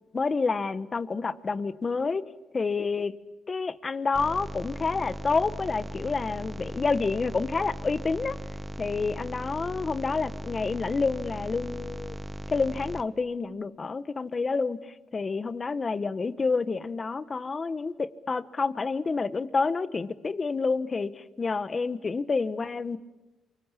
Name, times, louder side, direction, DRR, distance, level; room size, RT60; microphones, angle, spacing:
voice 1, 0.1-2.2 2.5-3.1 3.5-8.4 8.8-12.2 12.5-21.1 21.4-23.0, left 4 dB, 30° left, 15 dB, 1.2 m, -28 dB
sound 1, 4.1-13.0, equal, 5° right, 1.3 m, -38 dB
28.0 x 24.5 x 8.5 m, 1.1 s
cardioid pair, 90°, 0 cm